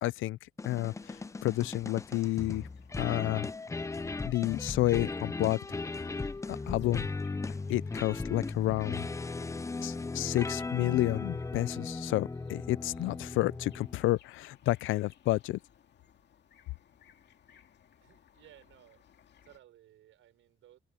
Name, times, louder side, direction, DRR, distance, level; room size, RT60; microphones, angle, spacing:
voice 1, 0.0-0.4 0.6-2.7 3.0-3.5 4.3-5.6 5.9-6.1 6.7-7.1 7.7-9.1 9.8-15.6, left 17 dB, 80° left, 0.5 m, -30 dB
sound 1, 0.6-14.1, left 3 dB, 15° left, 0.5 m, -37 dB
sound 2, 0.7-19.6, left 9 dB, 60° left, 2.3 m, -62 dB
voice 2, 18.0-19.1 19.4-20.8, right 13 dB, 85° right, 6.3 m, -59 dB
open air
cardioid pair, 90°, 20 cm